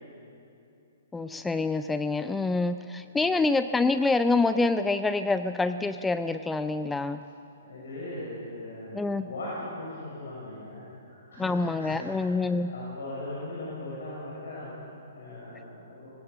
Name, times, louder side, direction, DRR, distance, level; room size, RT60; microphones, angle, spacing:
voice 1, 1.1-7.2 8.9-9.3 11.4-12.7, left 3 dB, 5° left, 11 dB, 0.4 m, -26 dB
voice 2, 7.6-10.9 11.3-12.3 12.6-16.1, left 1 dB, 60° left, -6 dB, 6.4 m, -39 dB
19.5 x 18.5 x 7.7 m, 2.6 s
figure-of-eight pair, 120°, 0 cm